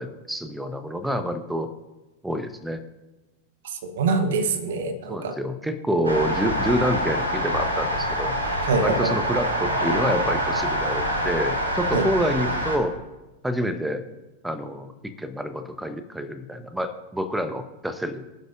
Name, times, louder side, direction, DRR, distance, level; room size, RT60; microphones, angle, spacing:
voice 1, 0.0-1.7 2.2-2.8 5.1-8.3 8.8-13.0 13.4-14.0 14.4-18.2, equal, 5° right, 9 dB, 0.9 m, -27 dB
voice 2, 3.6-5.3 8.6-9.2 11.9-12.1, right 4 dB, 60° right, 9 dB, 1.1 m, -25 dB
sound 1, 6.0-12.8, equal, 75° right, 2.1 m, -25 dB
23.0 x 7.9 x 2.5 m, 1.1 s
figure-of-eight pair, 90°, 0 cm